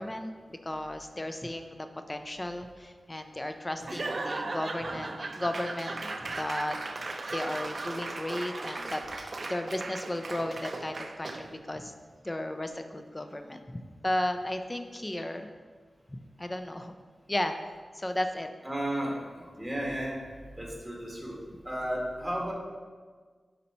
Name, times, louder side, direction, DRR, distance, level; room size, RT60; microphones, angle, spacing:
voice 1, 0.0-6.8 7.3-11.9 12.2-15.5 16.1-17.0 17.3-17.5 17.9-18.5, left 1 dB, 20° left, 7 dB, 0.4 m, -35 dB
Laughter / Applause / Crowd, 3.8-11.6, right 2 dB, 55° right, 0.4 m, -37 dB
voice 2, 18.6-20.2 20.6-21.4 21.6-22.5, right 1 dB, 5° right, -3 dB, 1.4 m, -33 dB
5.4 x 4.1 x 4.2 m, 1.5 s
wide cardioid pair, 80°, 0 cm